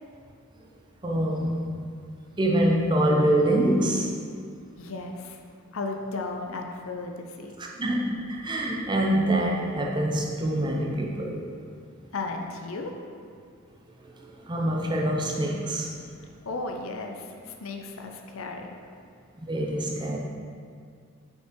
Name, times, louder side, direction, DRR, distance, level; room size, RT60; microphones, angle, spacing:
voice 1, 1.0-1.6 2.4-4.1 7.6-11.4 14.4-15.9 19.4-20.2, right 1 dB, 20° right, -1 dB, 0.5 m, -25 dB
voice 2, 4.8-5.4 5.7-7.5 12.1-12.9 16.4-18.8, left 3 dB, 65° left, 3 dB, 0.6 m, -35 dB
5.7 x 5.4 x 3.7 m, 2.2 s
head